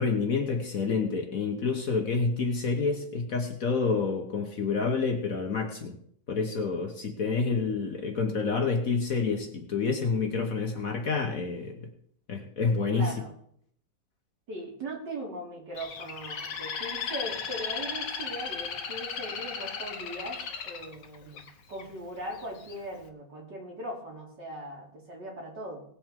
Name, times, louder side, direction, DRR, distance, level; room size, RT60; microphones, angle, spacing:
voice 1, 0.0-5.9 6.3-11.7 12.3-13.1, left 4 dB, 50° left, 4 dB, 1.5 m, -28 dB
voice 2, 12.9-13.3 14.5-20.4 20.6-21.4 21.7-25.8, right 1 dB, 60° right, -2 dB, 3.5 m, -39 dB
Bird, 15.8-21.8 22.4-22.8, left 6 dB, 65° left, 1.6 m, -36 dB
18.5 x 7.8 x 3.7 m, 0.67 s
omnidirectional pair, 2.1 m